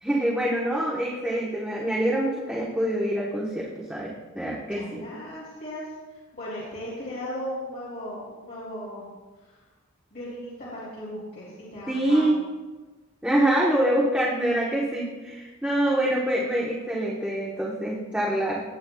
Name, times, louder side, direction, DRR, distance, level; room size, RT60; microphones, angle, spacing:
voice 1, 0.0-5.0 11.9-12.3 13.2-18.6, right 1 dB, 5° right, -5 dB, 1.0 m, -25 dB
voice 2, 4.7-9.1 9.4-9.6 10.1-12.2, equal, 45° left, -9 dB, 2.7 m, -37 dB
17.0 x 7.7 x 2.3 m, 1.3 s
head